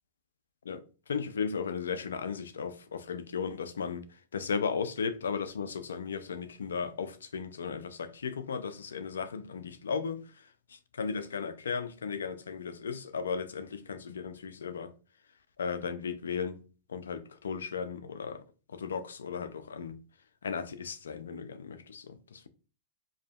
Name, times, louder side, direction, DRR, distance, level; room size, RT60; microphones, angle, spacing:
voice 1, 0.6-14.9 15.6-16.6 16.9-20.0 20.4-22.5, left 6 dB, 90° left, 0.5 m, -36 dB
4.8 x 2.9 x 2.4 m
hypercardioid pair, 115°, 0 cm